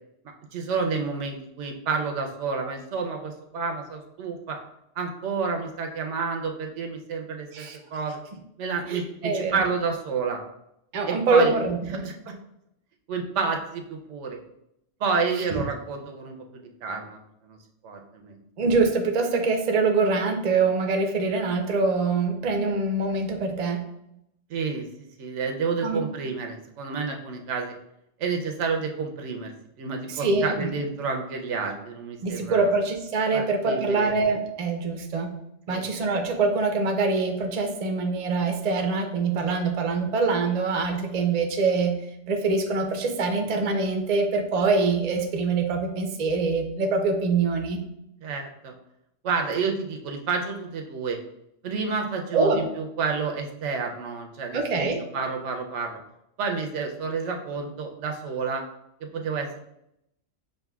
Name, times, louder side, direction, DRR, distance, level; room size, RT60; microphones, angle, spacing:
voice 1, 0.5-4.6 5.0-8.2 8.6-10.4 11.1-11.6 12.0-12.4 13.1-14.4 15.0-17.6 17.8-18.4 24.5-24.9 25.2-27.7 28.2-29.5 29.8-32.7 33.3-34.1 35.7-35.8 48.2-48.7 49.2-51.2 51.6-56.0 56.4-58.6 59.0-59.6, right 5 dB, 80° right, 3 dB, 0.9 m, -30 dB
voice 2, 8.9-9.6 10.9-12.1 18.6-23.9 25.8-26.0 30.1-30.7 32.2-35.3 35.7-42.0 42.3-47.8 52.3-52.6 54.5-55.0, right 4 dB, 45° right, 3 dB, 0.5 m, -24 dB
6.5 x 2.5 x 2.3 m, 0.79 s
omnidirectional pair, 1.2 m